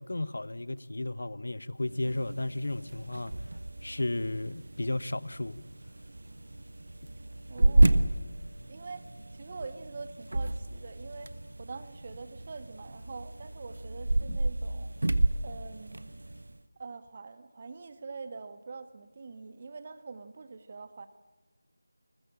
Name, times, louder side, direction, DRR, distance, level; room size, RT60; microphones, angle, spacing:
voice 1, 0.0-3.3 3.8-5.7, left 2 dB, 60° left, 1.0 m, -33 dB
sound 1, 1.8-16.6, right 2 dB, 60° right, 1.3 m, -31 dB
voice 2, 7.5-8.1 8.7-14.9 15.4-16.2 16.8-21.1, right 4 dB, 30° right, 1.6 m, -44 dB
21.5 x 20.5 x 8.7 m
figure-of-eight pair, 170°, 0 cm